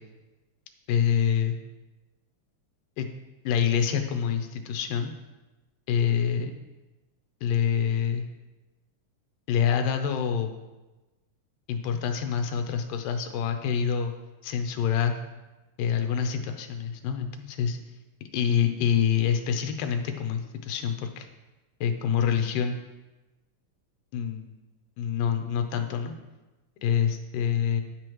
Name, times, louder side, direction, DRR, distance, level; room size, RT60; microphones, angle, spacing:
voice 1, 0.9-1.6 3.0-3.1 3.4-5.1 5.9-6.5 7.4-8.3 9.5-10.5 11.7-14.1 14.4-15.2 15.8-17.8 18.3-21.3 21.8-22.8 24.1-24.5 25.0-26.2 26.8-27.8, left 8 dB, 85° left, 6 dB, 2.5 m, -26 dB
10.5 x 8.1 x 3.0 m, 1.1 s
omnidirectional pair, 3.8 m